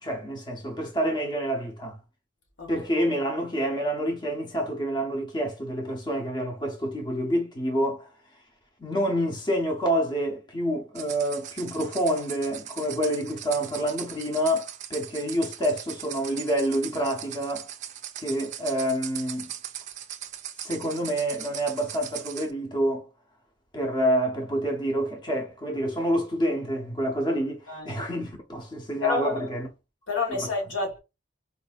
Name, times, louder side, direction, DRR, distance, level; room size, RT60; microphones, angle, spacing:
voice 1, 0.0-2.0 2.7-8.1 8.8-17.7 18.2-19.5 20.6-23.1 23.7-29.7 30.3-30.4, equal, 25° left, 0.6 m, -28 dB
sound 1, 10.9-22.5, right 10 dB, 40° right, 0.3 m, -39 dB
voice 2, 27.7-28.0 29.0-29.4 30.1-31.0, left 4 dB, 85° left, 1.5 m, -28 dB
4.2 x 2.6 x 2.3 m
head